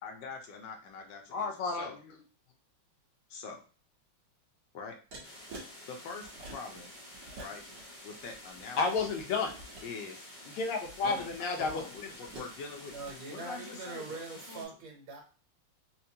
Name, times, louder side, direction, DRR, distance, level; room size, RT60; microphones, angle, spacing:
voice 1, 0.0-2.0 3.3-3.6 4.7-4.9 5.9-6.9 7.4-7.6 8.0-9.1 9.8-10.2 11.0-11.3 11.6-12.9 13.3-14.6, left 4 dB, 70° left, 3 dB, 1.2 m, -44 dB
voice 2, 1.3-1.9 8.8-9.5 10.6-11.8, left 4 dB, 90° left, 4 dB, 1.6 m, -31 dB
sound 1, 5.1-5.7 6.2-6.8 7.1-7.8 8.2-9.9 10.8-12.5 12.9-13.1, right 2 dB, 55° right, 1.5 m, -48 dB
sound 2, 5.2-14.6, left 1 dB, 40° left, 0.6 m, -50 dB
voice 3, 12.9-15.2, right 3 dB, 75° right, 1 dB, 1.8 m, -43 dB
4.4 x 2.5 x 2.8 m, 0.37 s
omnidirectional pair, 2.3 m